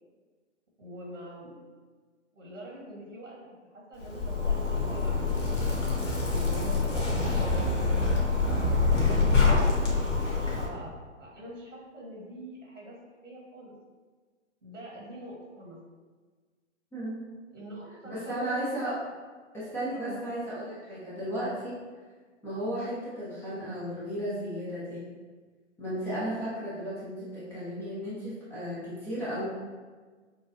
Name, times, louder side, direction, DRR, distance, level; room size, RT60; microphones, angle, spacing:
voice 1, 0.8-1.6 2.3-3.4 3.7-5.6 6.3-7.0 7.3-7.9 8.4-9.5 10.5-10.9 11.2-13.0 13.2-13.8 14.6-15.8 17.5-18.7 19.0-19.1 19.9-20.3, right 1 dB, 90° right, -3 dB, 1.4 m, -44 dB
Zipper (clothing), 4.0-10.7, left 3 dB, 85° left, 1.2 m, -26 dB
voice 2, 18.0-19.0 19.5-21.8 22.4-25.0 25.8-29.5, equal, 5° left, -10 dB, 0.5 m, -34 dB
6.2 x 2.3 x 2.6 m, 1.4 s
figure-of-eight pair, 125°, 37 cm